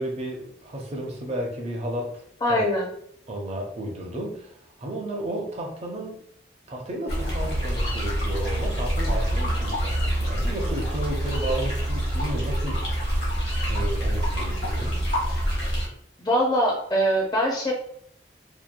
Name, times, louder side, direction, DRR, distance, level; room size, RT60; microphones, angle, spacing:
voice 1, 0.0-2.7 3.3-6.3 6.7-13.0 13.7-15.1, right 1 dB, 35° right, 0 dB, 0.5 m, -33 dB
voice 2, 2.4-2.9 16.2-17.7, equal, 20° left, -1 dB, 0.4 m, -22 dB
sound 1, 7.1-15.9, equal, 65° left, 1.1 m, -26 dB
2.7 x 2.0 x 2.4 m, 0.67 s
head